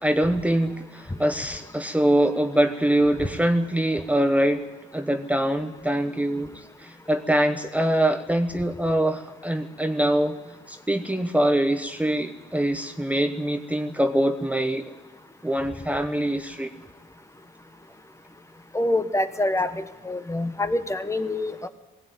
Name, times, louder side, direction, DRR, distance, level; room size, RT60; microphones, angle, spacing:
voice 1, 0.0-4.6 4.9-6.5 6.8-10.4 10.7-14.8 15.4-16.7, right 1 dB, 5° right, 7 dB, 1.1 m, -23 dB
voice 2, 18.7-19.7 20.1-21.7, left 1 dB, 15° left, 9 dB, 1.2 m, -25 dB
17.5 x 16.5 x 9.3 m, 1.1 s
cardioid pair, 80°, 20 cm